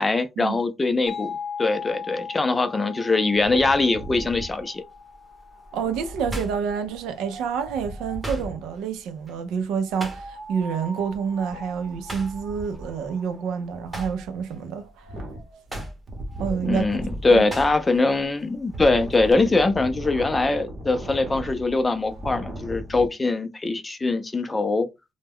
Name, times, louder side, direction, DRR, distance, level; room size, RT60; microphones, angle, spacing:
voice 1, 0.0-4.8 16.6-24.9, left 3 dB, 20° left, 0.4 m, -22 dB
sound 1, 1.1-6.5, left 6 dB, 40° left, 0.8 m, -38 dB
Wind, 3.3-8.7 9.8-23.1, right 1 dB, 45° right, 0.8 m, -38 dB
sound 2, 4.0-4.4 4.9-7.4 7.7-10.6 10.9-11.2 11.5-13.5 13.8-18.1 18.4-19.3, right 1 dB, 10° right, 0.8 m, -39 dB
voice 2, 5.7-15.1 16.4-16.8 17.3-17.4, right 6 dB, 85° right, 0.5 m, -28 dB
2.2 x 2.1 x 3.4 m
cardioid pair, 110°, 0 cm